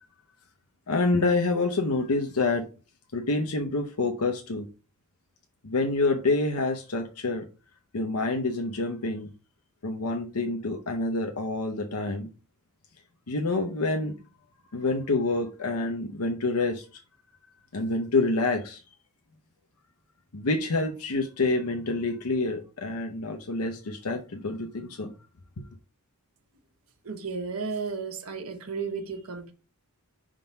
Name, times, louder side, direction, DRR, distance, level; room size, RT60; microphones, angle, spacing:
voice 1, 0.9-2.7 3.1-4.7 5.6-7.5 7.9-9.3 9.8-12.3 13.3-14.1 14.7-17.0 17.7-18.8 20.3-25.1, left 3 dB, 85° left, 0.8 m, -27 dB
voice 2, 27.0-29.5, right 5 dB, 75° right, 1.2 m, -33 dB
5.7 x 3.8 x 5.2 m
head